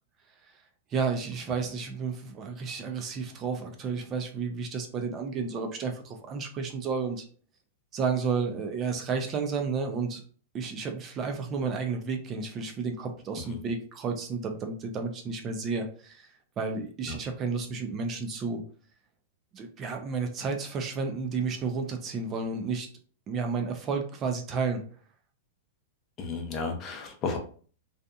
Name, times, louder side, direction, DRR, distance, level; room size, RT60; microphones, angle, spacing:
voice 1, 0.9-7.3 7.9-10.2 10.5-16.3 16.6-18.6 19.5-22.9 23.3-24.8, right 5 dB, 25° right, 4 dB, 0.4 m, -31 dB
voice 2, 26.2-27.4, left 4 dB, 30° left, 3 dB, 0.5 m, -33 dB
2.7 x 2.4 x 2.3 m, 0.43 s
supercardioid pair, 145°, 0 cm